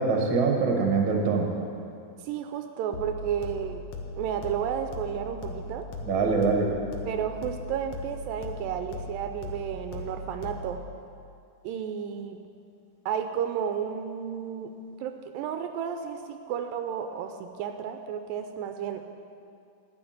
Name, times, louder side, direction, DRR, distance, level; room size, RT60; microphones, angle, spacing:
voice 1, 0.0-1.5 6.0-6.7, right 4 dB, 45° right, 1 dB, 1.7 m, -24 dB
voice 2, 2.2-3.8 4.2-5.9 7.1-10.8 11.6-12.4 13.1-14.7 15.0-19.1, right 8 dB, 85° right, 7 dB, 2.3 m, -32 dB
sound 1, 2.9-10.9, left 2 dB, 70° left, 1.4 m, -39 dB
12.0 x 6.6 x 9.4 m, 2.5 s
omnidirectional pair, 4.1 m